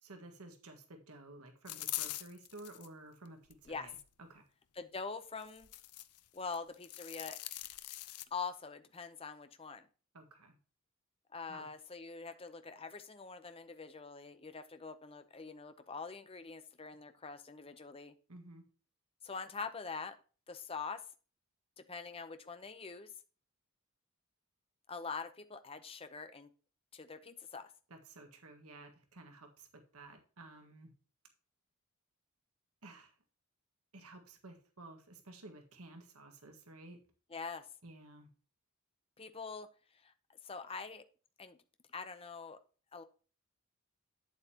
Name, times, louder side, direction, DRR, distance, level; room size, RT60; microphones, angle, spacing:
voice 1, 0.0-4.0 4.3-4.4 10.1-10.6 11.5-11.7 18.3-18.6 27.9-30.9 32.8-33.1 33.9-37.0 37.8-38.3, right 2 dB, 85° right, 4 dB, 1.7 m, -53 dB
sound 1, 1.7-2.9 3.5-4.1 5.4-6.2 6.5-8.2, left 15 dB, 90° left, 0.6 m, -43 dB
voice 2, 4.7-5.7 6.3-7.4 8.3-9.9 11.3-18.1 19.2-20.2 20.5-21.0 21.8-23.1 24.9-26.5 26.9-27.7 37.3-37.7 39.2-39.7 40.0-40.1 40.4-41.0 41.4-41.6 41.9-42.6 42.9-43.0, left 4 dB, 25° left, 9 dB, 0.7 m, -44 dB
8.8 x 7.9 x 2.9 m, 0.37 s
head